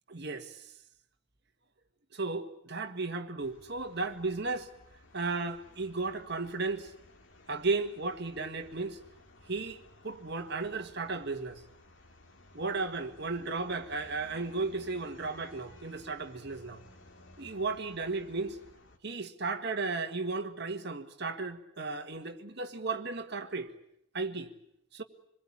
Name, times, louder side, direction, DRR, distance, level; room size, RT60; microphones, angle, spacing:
voice 1, 0.1-0.7 2.1-4.7 5.1-6.9 7.5-9.0 9.5-11.6 12.5-16.8 17.4-18.6 19.0-23.7 24.1-24.5 24.9-25.0, right 3 dB, 50° right, 1.8 m, -35 dB
sound 1, 3.4-19.0, left 2 dB, 60° left, 2.2 m, -57 dB
26.5 x 21.5 x 8.7 m
head